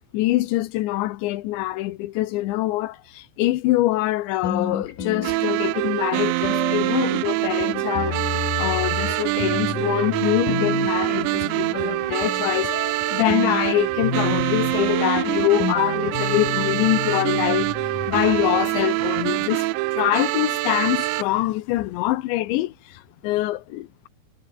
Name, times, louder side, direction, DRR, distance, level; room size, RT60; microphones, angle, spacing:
voice 1, 0.1-24.1, left 17 dB, 80° left, 3.3 m, -24 dB
sound 1, 4.4-5.9 6.4-18.6, left 6 dB, 45° left, 4.5 m, -31 dB
sound 2, 5.2-21.2, right 20 dB, 80° right, 2.9 m, -25 dB
omnidirectional pair, 5.3 m